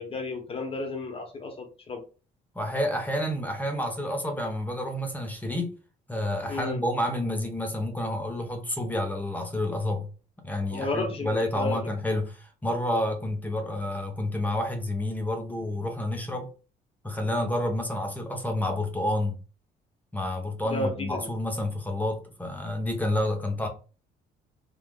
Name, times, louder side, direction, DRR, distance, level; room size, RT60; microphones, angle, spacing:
voice 1, 0.0-2.0 6.5-6.8 10.7-11.8 20.6-21.3, left 2 dB, 35° left, 1.0 m, -32 dB
voice 2, 2.5-5.7 6.1-10.1 10.4-16.5 17.0-19.4 20.1-23.7, left 1 dB, 10° left, 0.7 m, -29 dB
3.4 x 2.4 x 2.2 m
cardioid pair, 110°, 17 cm